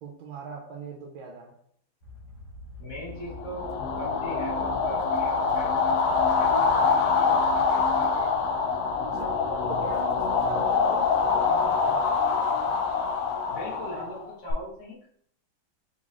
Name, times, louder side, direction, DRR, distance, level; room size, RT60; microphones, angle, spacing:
voice 1, 0.0-1.5 9.1-9.4 9.7-12.3, right 4 dB, 80° right, 0 dB, 1.4 m, -39 dB
sound 1, 2.0-7.6, left 2 dB, 70° left, 1.9 m, -46 dB
voice 2, 2.8-5.9 6.3-8.4 13.5-15.1, equal, 50° left, -4 dB, 1.4 m, -40 dB
sound 2, 3.4-14.5, left 5 dB, 90° left, 0.8 m, -25 dB
4.3 x 3.8 x 2.4 m, 0.67 s
omnidirectional pair, 2.2 m